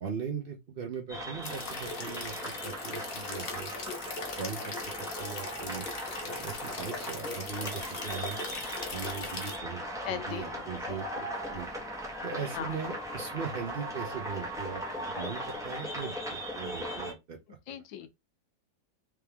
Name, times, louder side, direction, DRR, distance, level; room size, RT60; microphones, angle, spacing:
voice 1, 0.0-3.7 4.4-5.9 6.2-8.4 8.9-9.8 10.1-11.7 12.2-14.8 15.1-17.8, right 6 dB, 75° right, 0.5 m, -39 dB
sound 1, 1.1-17.1, equal, 5° right, 0.8 m, -39 dB
sound 2, 1.4-9.6, left 4 dB, 50° left, 0.7 m, -39 dB
voice 2, 10.1-10.6 10.9-11.0 12.5-12.7 17.7-18.1, left 10 dB, 80° left, 1.3 m, -38 dB
3.6 x 3.4 x 3.4 m
omnidirectional pair, 2.0 m